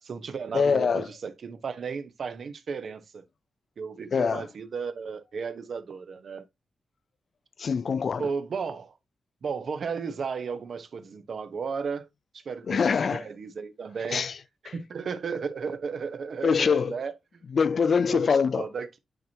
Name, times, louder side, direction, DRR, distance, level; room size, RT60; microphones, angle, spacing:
voice 1, 0.0-3.2 3.8-6.4 8.2-9.0 9.4-12.1 12.3-14.2 14.7-17.4 18.1-19.0, right 5 dB, 65° right, 1.0 m, -34 dB
voice 2, 0.5-1.1 4.1-4.5 7.6-8.3 12.7-13.2 14.1-14.3 14.7-14.8 16.4-16.9 17.5-18.6, left 6 dB, 55° left, 0.4 m, -24 dB
9.2 x 4.5 x 2.9 m
cardioid pair, 90°, 0 cm